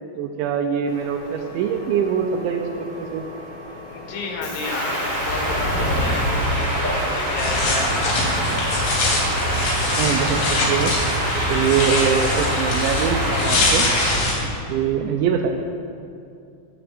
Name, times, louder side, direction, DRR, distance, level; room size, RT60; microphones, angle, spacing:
voice 1, 0.2-3.3 10.0-10.9 11.5-13.9 14.7-15.6, right 7 dB, 80° right, 4 dB, 2.7 m, -23 dB
Subway metro underground, 0.9-8.3, left 1 dB, 40° left, 2.1 m, -31 dB
voice 2, 3.9-8.0 14.3-14.5, left 3 dB, 85° left, 1 dB, 4.5 m, -31 dB
sound 1, 4.6-14.2, equal, 20° right, 4.2 m, -25 dB
sound 2, 7.4-14.3, left 2 dB, 70° left, 5.8 m, -23 dB
26.0 x 13.5 x 2.6 m, 2.5 s
omnidirectional pair, 5.8 m